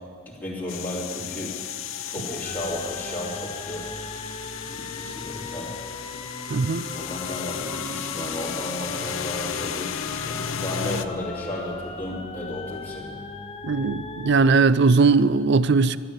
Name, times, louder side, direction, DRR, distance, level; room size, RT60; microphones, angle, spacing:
voice 1, 0.3-1.5 2.1-3.9 4.7-5.7 6.9-13.2, left 1 dB, 10° left, -6 dB, 3.0 m, -34 dB
sound 1, 0.7-11.1, left 8 dB, 80° left, 0.6 m, -34 dB
sound 2, 2.4-14.7, left 3 dB, 30° left, 0.7 m, -38 dB
voice 2, 6.5-6.8 13.6-16.0, right 4 dB, 55° right, 16 dB, 0.5 m, -19 dB
13.0 x 11.5 x 8.2 m, 2.2 s
head